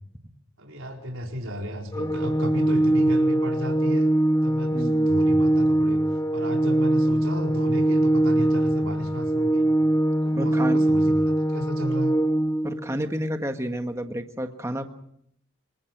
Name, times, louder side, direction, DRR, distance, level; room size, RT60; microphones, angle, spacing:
voice 1, 0.6-4.1 4.4-6.0 6.3-9.7 10.2-12.1, equal, 75° right, 1 dB, 4.5 m, -33 dB
Organ, 1.9-12.9, right 1 dB, 20° left, 1.4 m, -22 dB
voice 2, 4.7-5.1 10.3-10.8 12.6-14.8, equal, 15° right, 6 dB, 1.5 m, -30 dB
27.5 x 22.5 x 6.1 m, 0.71 s
head